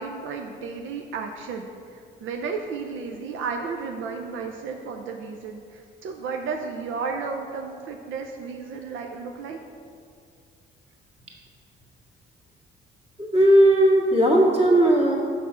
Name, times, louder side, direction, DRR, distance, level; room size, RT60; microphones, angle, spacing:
voice 1, 0.0-9.6, right 5 dB, 80° right, 3 dB, 0.6 m, -33 dB
voice 2, 13.2-15.1, right 1 dB, 30° right, -3 dB, 1.9 m, -17 dB
5.9 x 5.7 x 6.2 m, 2.3 s
cardioid pair, 90°, 20 cm